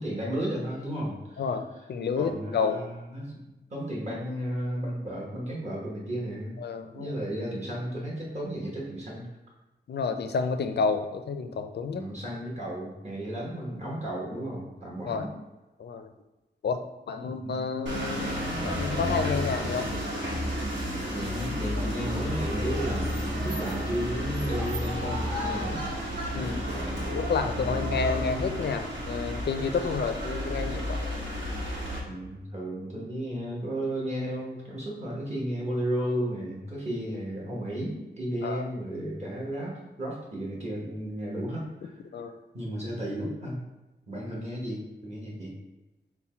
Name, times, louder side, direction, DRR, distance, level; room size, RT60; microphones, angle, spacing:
voice 1, 0.0-1.4 2.2-6.6 6.9-9.3 11.9-15.3 17.2-17.6 21.1-25.8 32.1-42.0 42.5-43.6 44.1-45.6, right 1 dB, 35° right, -4 dB, 1.1 m, -33 dB
voice 2, 1.4-2.8 6.6-7.1 9.9-12.0 15.1-15.3 15.8-16.1 16.6-16.8 17.1-19.9 26.3-26.6 26.9-31.0 38.4-38.7 42.1-42.3, left 5 dB, 65° left, 7 dB, 0.4 m, -30 dB
sound 1, 17.9-32.0, equal, 85° right, 1.2 m, -31 dB
5.7 x 2.2 x 4.3 m, 1.1 s
wide cardioid pair, 160°, 18 cm